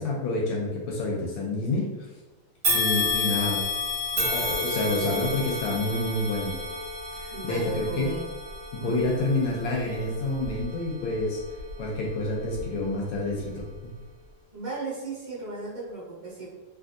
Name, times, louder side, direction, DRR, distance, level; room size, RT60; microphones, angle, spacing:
voice 1, 0.0-1.9 2.7-3.6 4.1-6.5 7.1-8.1 8.7-11.4 11.8-13.7, left 2 dB, 75° left, -2 dB, 1.2 m, -28 dB
sound 1, 2.6-12.0 12.5-12.6 13.6-13.7, left 2 dB, 50° right, 1.1 m, -31 dB
voice 2, 7.3-8.3 8.8-9.0 14.5-16.5, right 3 dB, 30° right, -8 dB, 0.7 m, -36 dB
3.5 x 2.3 x 2.5 m, 1.2 s
omnidirectional pair, 2.4 m